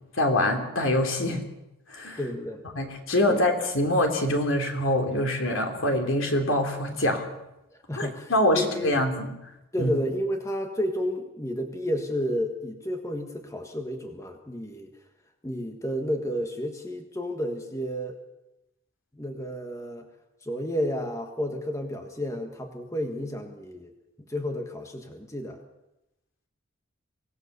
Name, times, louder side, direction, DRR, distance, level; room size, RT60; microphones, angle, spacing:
voice 1, 0.2-1.5 1.9-2.2 2.8-7.3 8.0-9.3 9.8-9.9, left 1 dB, 75° left, 4 dB, 3.2 m, -24 dB
voice 2, 2.2-2.6 3.3-3.4 7.9-8.9 9.7-14.9 15.4-18.2 19.1-20.1 20.4-23.9 24.3-25.6, equal, 15° left, 4 dB, 1.5 m, -31 dB
24.5 x 17.5 x 6.8 m, 0.92 s
head